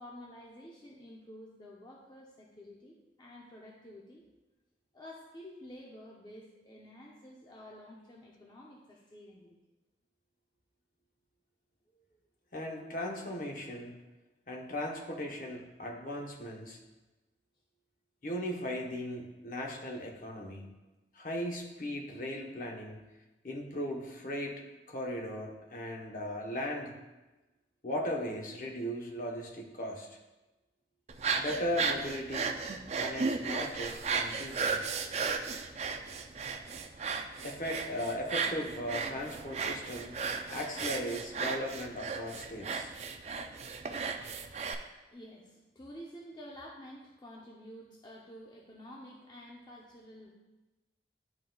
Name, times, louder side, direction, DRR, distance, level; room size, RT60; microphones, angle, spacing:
voice 1, 0.0-4.2 4.9-9.6 11.9-12.2 43.1-43.3 45.1-50.3, equal, 25° left, -3 dB, 0.6 m, -50 dB
voice 2, 12.5-14.0 14.5-16.8 18.2-20.6 21.1-23.0 23.4-24.6 24.9-26.9 27.8-30.2 31.4-32.5 32.9-34.8 37.4-40.1 40.5-42.9, left 1 dB, 50° left, 0 dB, 0.9 m, -37 dB
sound 1, 31.1-44.7, right 5 dB, 40° right, 0.4 m, -35 dB
11.0 x 3.9 x 2.3 m, 1.1 s
head